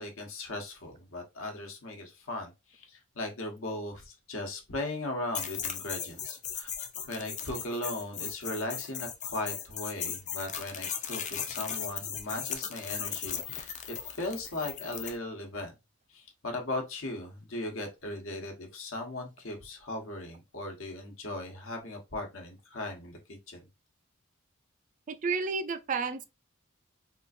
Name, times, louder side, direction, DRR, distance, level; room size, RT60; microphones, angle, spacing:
voice 1, 0.0-6.7 7.1-13.7 14.2-15.7 16.1-23.7, left 2 dB, 70° left, 1.0 m, -38 dB
sound 1, 5.3-15.2, left 8 dB, 35° left, 0.5 m, -37 dB
voice 2, 25.1-26.2, right 4 dB, 40° right, 0.3 m, -31 dB
3.7 x 2.4 x 2.5 m
head